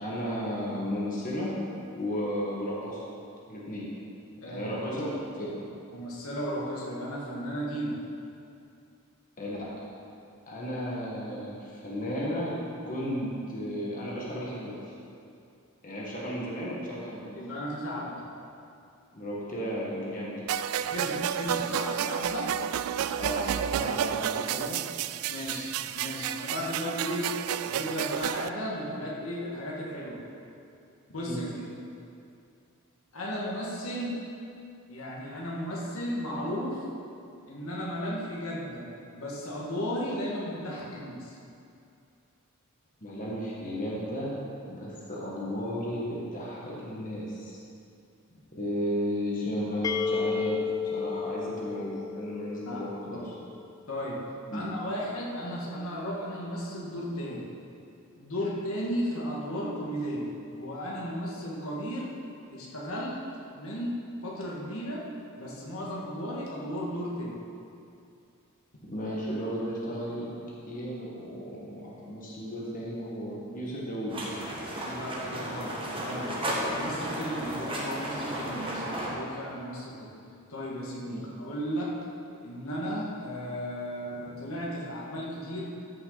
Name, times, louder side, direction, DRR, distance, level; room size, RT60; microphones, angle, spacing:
voice 1, 0.0-1.6 1.9-3.0 3.5-3.9 4.5-5.1 5.4-5.5 9.4-9.7 10.5-12.6 12.8-14.9 15.8-17.3 19.1-20.5 23.1-24.8 31.2-31.4 43.0-44.3 44.7-47.6 48.5-50.6 50.9-53.3 54.5-54.7 68.9-70.3 70.7-74.2 81.1-81.2, equal, 40° left, -5 dB, 1.6 m, -34 dB
voice 2, 4.4-5.1 5.9-8.0 17.4-18.3 20.8-22.5 23.7-24.0 24.4-24.7 25.3-27.3 27.7-30.2 31.1-31.5 33.1-34.1 34.9-36.9 37.5-38.9 39.1-41.4 52.7-53.3 53.9-54.2 54.5-57.5 58.2-60.3 60.6-62.2 62.5-63.2 63.5-64.0 64.2-65.0 65.4-67.4 74.8-75.7 76.0-76.3 76.7-80.1 80.5-81.9 82.4-85.6, equal, 75° left, -5 dB, 1.7 m, -35 dB
sound 1, 20.5-28.5, right 9 dB, 80° right, 0.3 m, -31 dB
sound 2, 49.8-53.6, left 5 dB, 15° left, 0.4 m, -32 dB
sound 3, 74.1-79.1, equal, 25° right, 1.4 m, -34 dB
14.0 x 5.9 x 4.0 m, 2.5 s
head